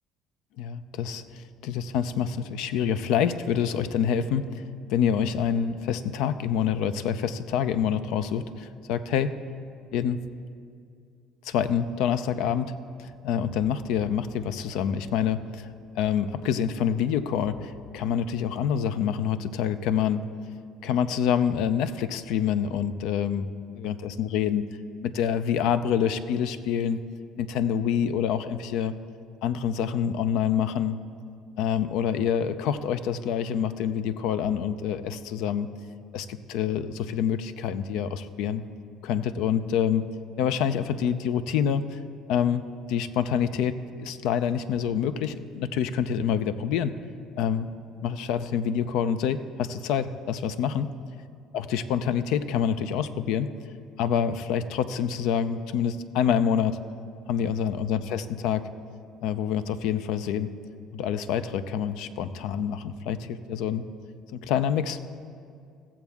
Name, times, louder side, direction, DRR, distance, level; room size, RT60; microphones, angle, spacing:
voice 1, 0.6-4.6 4.9-9.3 9.9-10.2 11.4-12.7 13.0-20.2 20.8-23.5 23.8-24.6 25.0-27.0 27.4-28.9 29.4-31.0 31.6-35.7 36.1-38.6 39.0-40.0 40.4-42.0 42.3-46.9 47.4-47.7 48.0-50.9 51.5-53.5 54.0-56.8 57.3-58.7 59.2-60.5 60.9-63.8 64.3-65.0, left 8 dB, 75° left, 13 dB, 0.4 m, -27 dB
15.5 x 7.2 x 3.5 m, 2.3 s
supercardioid pair, 85°, 0 cm